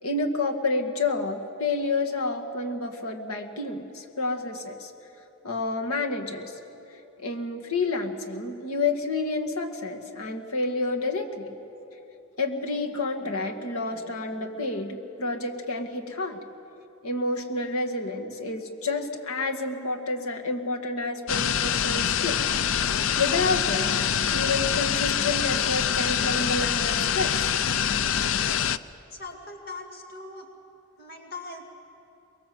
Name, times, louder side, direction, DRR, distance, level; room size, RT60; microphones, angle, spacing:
voice 1, 0.0-4.9 5.4-6.6 7.2-11.5 12.4-16.4 17.0-22.4 23.2-23.9 24.3-27.5, left 3 dB, 85° left, 4 dB, 2.0 m, -29 dB
sound 1, 21.3-28.8, left 8 dB, 65° left, 0.5 m, -25 dB
voice 2, 29.1-30.5 31.0-31.7, left 3 dB, 45° left, 3 dB, 2.1 m, -40 dB
24.0 x 22.0 x 7.8 m, 2.9 s
head